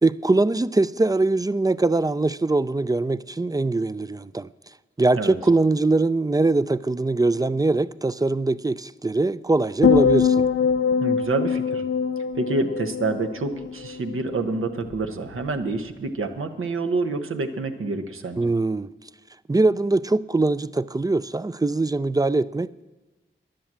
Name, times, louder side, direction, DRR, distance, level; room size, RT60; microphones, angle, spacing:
voice 1, 0.0-4.5 5.0-10.4 18.4-18.9 19.5-22.8, right 2 dB, 20° right, 0.4 m, -22 dB
sound 1, 9.8-14.2 14.5-14.9, left 6 dB, 85° left, 0.5 m, -23 dB
voice 2, 11.0-11.8 12.3-18.4, right 3 dB, 90° right, 1.0 m, -27 dB
11.0 x 10.5 x 7.4 m
cardioid pair, 50°, 21 cm